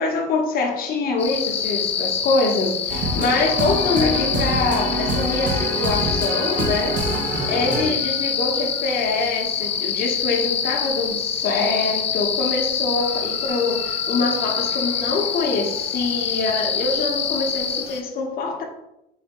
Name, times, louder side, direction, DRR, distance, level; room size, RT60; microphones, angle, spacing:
voice 1, 0.0-7.0 7.5-18.6, left 3 dB, 60° left, 1 dB, 0.9 m, -24 dB
sound 1, 1.2-18.0, left 7 dB, 40° left, 0.5 m, -26 dB
sound 2, 2.9-7.9, right 1 dB, 50° right, 0.8 m, -26 dB
4.8 x 2.2 x 4.4 m, 0.87 s
cardioid pair, 95°, 17 cm